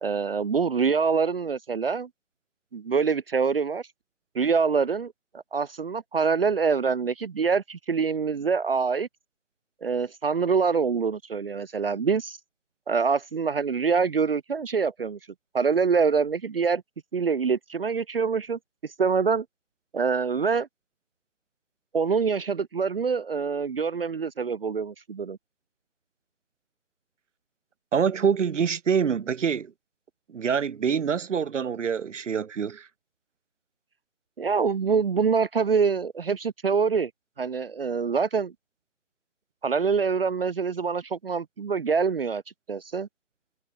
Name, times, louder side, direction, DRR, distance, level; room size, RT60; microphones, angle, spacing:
voice 1, 0.0-2.1 2.7-3.8 4.3-9.1 9.8-12.4 12.9-15.2 15.5-16.8 17.1-19.4 19.9-20.7 21.9-25.4 34.4-37.1 37.4-38.5 39.6-42.4 42.7-43.1, right 5 dB, 50° right, 0.7 m, -25 dB
voice 2, 27.9-29.7 30.3-32.9, right 7 dB, 65° right, 1.0 m, -25 dB
hypercardioid pair, 170°, 39 cm